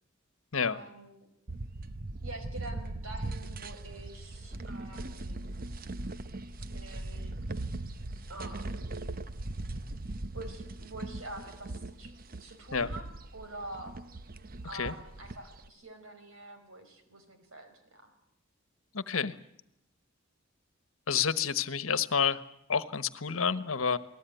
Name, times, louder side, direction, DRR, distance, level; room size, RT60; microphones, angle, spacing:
voice 1, 0.6-1.3 2.2-5.4 6.7-7.3 8.3-8.9 10.3-12.1 12.4-13.1 13.3-13.9 14.6-18.1, right 2 dB, 85° right, 8 dB, 5.1 m, -46 dB
sound 1, 1.5-15.7, right 2 dB, 45° right, 1.0 m, -40 dB
voice 2, 18.9-19.3 21.1-22.4 22.7-24.0, left 6 dB, 85° left, 13 dB, 1.3 m, -29 dB
28.0 x 19.0 x 9.3 m, 0.81 s
head